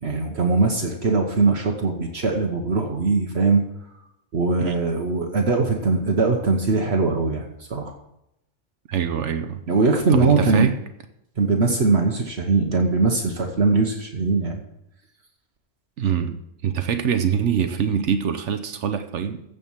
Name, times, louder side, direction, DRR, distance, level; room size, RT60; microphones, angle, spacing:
voice 1, 0.0-3.6 4.3-7.9 9.7-10.7 11.4-14.6, right 3 dB, 60° right, 3 dB, 1.4 m, -21 dB
voice 2, 8.9-9.6 10.1-10.7 16.0-19.4, right 8 dB, 75° right, 8 dB, 1.1 m, -24 dB
15.0 x 5.2 x 7.3 m, 0.81 s
omnidirectional pair, 1.2 m